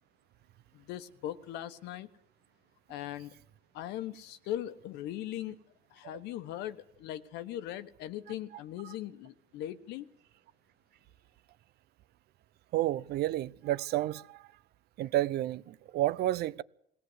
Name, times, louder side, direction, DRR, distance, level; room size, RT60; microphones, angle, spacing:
voice 1, 0.7-2.1 2.9-3.3 3.7-5.5 5.9-10.1, left 12 dB, 90° left, 1.3 m, -39 dB
voice 2, 12.7-14.5 15.0-16.6, right 15 dB, 70° right, 0.7 m, -31 dB
21.5 x 17.5 x 8.0 m
cardioid pair, 110°, 17 cm